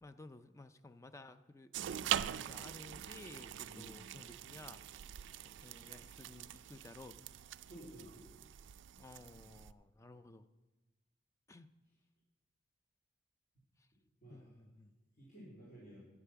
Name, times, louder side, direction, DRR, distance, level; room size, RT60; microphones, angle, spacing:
voice 1, 0.0-4.8 5.4-7.3 9.0-10.5 11.5-11.7 13.8-13.9 14.3-14.9, left 2 dB, 15° left, 11 dB, 0.4 m, -55 dB
sound 1, 1.7-9.7, right 11 dB, 65° right, 0.3 m, -43 dB
voice 2, 3.6-4.0 7.6-8.4 14.2-14.5 15.2-16.1, equal, 50° left, -6 dB, 2.8 m, -54 dB
10.0 x 8.4 x 5.7 m, 1.1 s
head